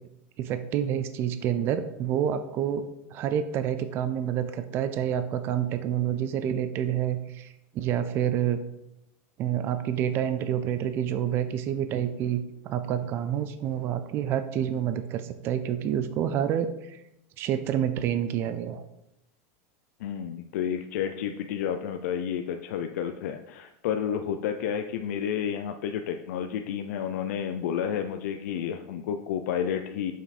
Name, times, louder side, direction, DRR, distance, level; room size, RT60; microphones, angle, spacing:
voice 1, 0.4-8.6 9.4-17.0 17.4-18.8, right 9 dB, 30° right, 10 dB, 0.4 m, -28 dB
voice 2, 20.0-30.1, left 8 dB, 75° left, 6 dB, 0.5 m, -31 dB
7.3 x 5.5 x 4.2 m, 0.84 s
supercardioid pair, 170°, 8 cm